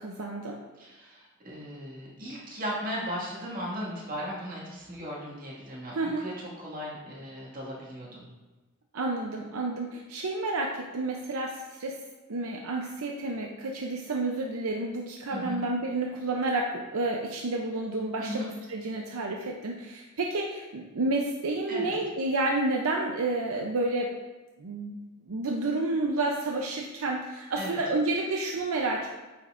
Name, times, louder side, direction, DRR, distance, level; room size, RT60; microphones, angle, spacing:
voice 1, 0.0-0.6 5.9-6.3 8.9-12.0 12.3-24.1 24.6-25.0 25.3-29.1, right 2 dB, 80° right, 0 dB, 0.6 m, -30 dB
voice 2, 0.8-8.3 15.3-15.6 18.2-18.5 21.7-22.0 27.6-27.8, equal, 40° right, -5 dB, 2.0 m, -37 dB
9.1 x 5.3 x 2.5 m, 1.2 s
head